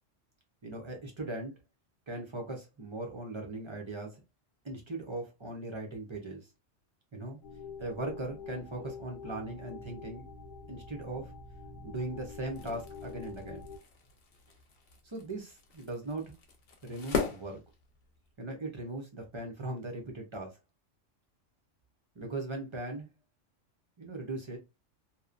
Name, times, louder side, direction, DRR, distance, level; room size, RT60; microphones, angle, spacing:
voice 1, 0.6-1.5 2.1-4.2 4.6-6.5 7.1-7.4 7.8-10.2 10.7-11.3 11.8-13.6 15.0-16.3 16.8-17.6 18.4-20.6 22.2-23.1 24.0-24.6, right 2 dB, 40° right, 0.4 m, -39 dB
sound 1, 7.4-13.8, left 5 dB, 85° left, 1.0 m, -46 dB
sound 2, 12.4-18.4, left 5 dB, 60° left, 0.8 m, -40 dB
2.9 x 2.1 x 2.4 m
omnidirectional pair, 1.3 m